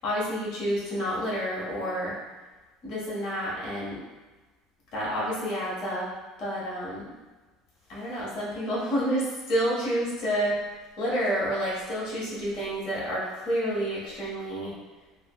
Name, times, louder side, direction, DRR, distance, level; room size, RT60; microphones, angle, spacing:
voice 1, 0.0-2.2 2.8-4.0 4.9-6.1 6.4-7.0 7.9-10.6 11.0-14.7, equal, 60° left, -7 dB, 1.4 m, -29 dB
5.5 x 2.1 x 2.3 m, 1.2 s
hypercardioid pair, 80°, 0 cm